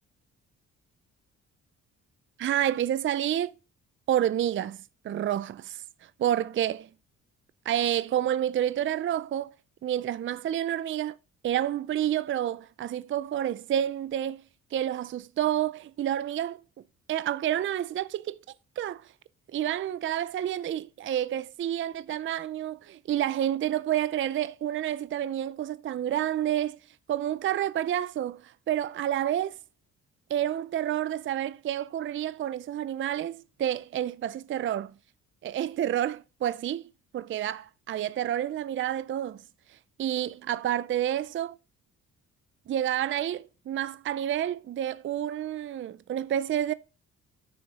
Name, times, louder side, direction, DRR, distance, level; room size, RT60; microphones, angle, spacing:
voice 1, 2.4-3.5 4.1-4.8 5.0-6.9 7.7-9.5 9.8-11.2 11.4-14.4 14.7-16.6 17.1-18.4 18.8-19.1 19.5-26.8 27.1-29.5 30.3-34.9 35.4-39.4 40.0-41.6 42.7-46.7, right 11 dB, 40° right, 0.5 m, -29 dB
11.0 x 6.7 x 4.0 m
cardioid pair, 90°, 30 cm